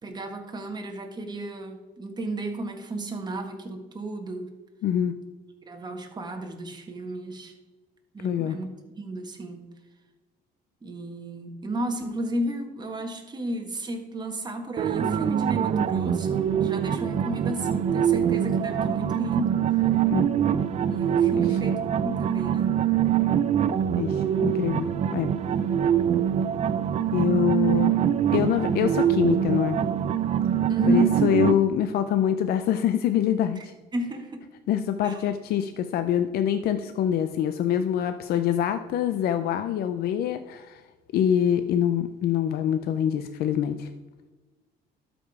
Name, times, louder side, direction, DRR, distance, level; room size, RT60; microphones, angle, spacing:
voice 1, 0.0-4.5 5.7-7.5 8.1-8.7 9.0-9.6 10.8-19.6 20.9-22.7 30.7-31.2 33.9-34.4 35.0-35.3, right 1 dB, 25° right, 3 dB, 1.5 m, -33 dB
voice 2, 4.8-5.2 8.2-8.6 20.1-20.3 24.0-25.3 27.1-28.0 28.3-29.8 30.9-33.7 34.7-40.8 41.1-43.9, left 9 dB, 65° left, 10 dB, 0.5 m, -25 dB
sound 1, 14.8-31.5, right 9 dB, 40° right, 0.4 m, -24 dB
12.5 x 5.1 x 4.8 m, 1.2 s
cardioid pair, 110°, 17 cm